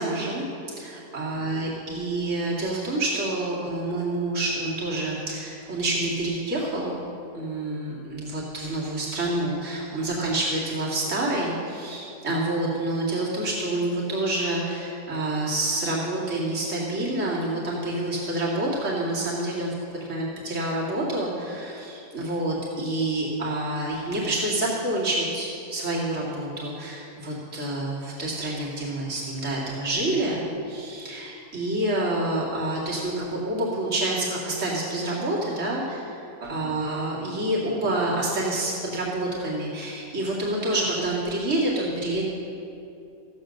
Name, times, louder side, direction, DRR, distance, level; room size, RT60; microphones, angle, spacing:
voice 1, 0.0-7.0 7.3-36.1 36.4-42.2, right 1 dB, 50° right, -6 dB, 2.6 m, -28 dB
14.5 x 9.0 x 6.4 m, 2.7 s
omnidirectional pair, 1.6 m